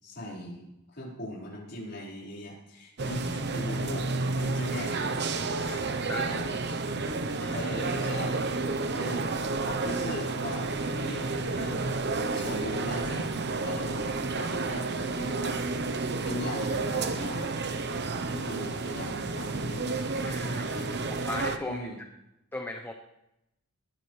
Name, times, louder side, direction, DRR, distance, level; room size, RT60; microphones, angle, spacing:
voice 1, 0.0-4.1 4.4-5.2 5.5-6.8 7.5-8.7 8.9-9.3 9.6-12.0 12.3-15.8 16.2-17.6 18.2-19.8 20.7-21.2 21.6-22.0, left 1 dB, 50° left, -4 dB, 4.9 m, -39 dB
sound 1, 3.0-21.6, right 3 dB, 50° right, 0.9 m, -31 dB
voice 2, 20.2-20.8 21.3-21.9 22.5-22.9, left 2 dB, 10° left, 3 dB, 0.9 m, -36 dB
20.0 x 11.5 x 3.3 m, 0.87 s
head